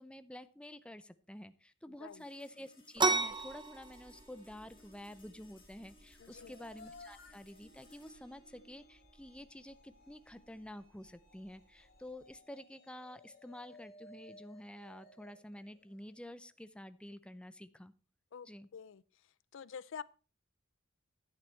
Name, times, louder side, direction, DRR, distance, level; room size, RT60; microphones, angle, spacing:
voice 1, 0.0-17.9 18.4-18.7, left 1 dB, 5° left, 0.5 m, -50 dB
sound 1, 2.1-12.7, equal, 25° left, 3.9 m, -64 dB
sound 2, 3.0-12.4, right 3 dB, 25° right, 0.9 m, -40 dB
voice 2, 6.2-6.5 18.3-18.5 18.7-19.0 19.5-20.0, left 7 dB, 70° left, 0.4 m, -46 dB
sound 3, 6.2-16.4, left 2 dB, 50° left, 3.2 m, -60 dB
11.0 x 8.9 x 4.4 m
head